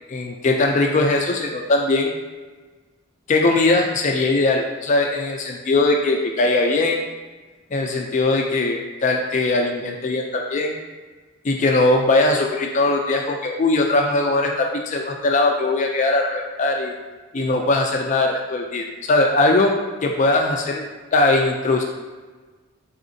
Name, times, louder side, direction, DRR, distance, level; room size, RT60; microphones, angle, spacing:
voice 1, 0.1-2.1 3.3-7.0 7.7-10.8 11.4-16.9 17.3-19.7 20.0-20.8 21.1-21.8, left 2 dB, 35° left, 2 dB, 0.3 m, -20 dB
4.1 x 3.7 x 2.6 m, 1.4 s
head